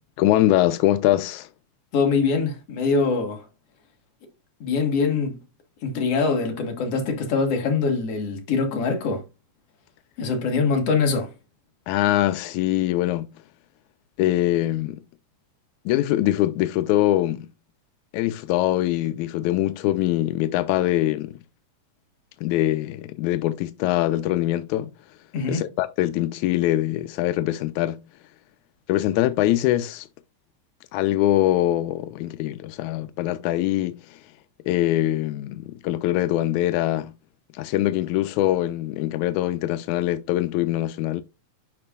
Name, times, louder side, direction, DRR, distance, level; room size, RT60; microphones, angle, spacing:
voice 1, 0.2-1.5 11.9-13.3 14.2-15.0 15.9-17.5 18.1-21.4 22.4-24.9 25.5-28.0 28.9-30.1 30.9-34.2 34.7-37.1 37.5-41.2, left 14 dB, 90° left, 2.0 m, -23 dB
voice 2, 1.9-3.5 4.6-5.4 5.8-9.2 10.2-11.3 25.3-25.7, left 4 dB, 60° left, 2.6 m, -23 dB
11.0 x 5.2 x 2.3 m
omnidirectional pair, 3.3 m